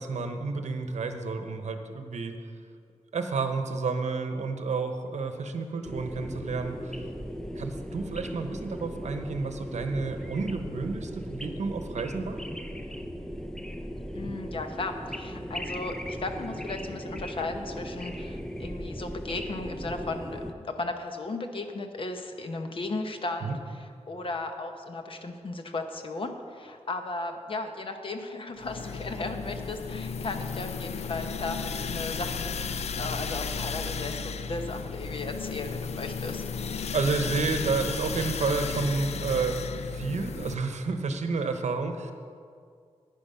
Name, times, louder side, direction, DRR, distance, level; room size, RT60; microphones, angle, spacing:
voice 1, 0.0-2.3 3.1-7.0 7.6-12.4 23.4-23.6 36.9-42.1, right 4 dB, 75° right, 6 dB, 0.9 m, -30 dB
sound 1, 5.8-20.5, equal, 5° left, 0.5 m, -37 dB
voice 2, 14.1-36.4, left 2 dB, 50° left, 5 dB, 0.9 m, -36 dB
sound 2, 28.6-40.5, left 5 dB, 65° left, 0.5 m, -34 dB
10.0 x 10.0 x 5.5 m, 2.2 s
wide cardioid pair, 180°, 12 cm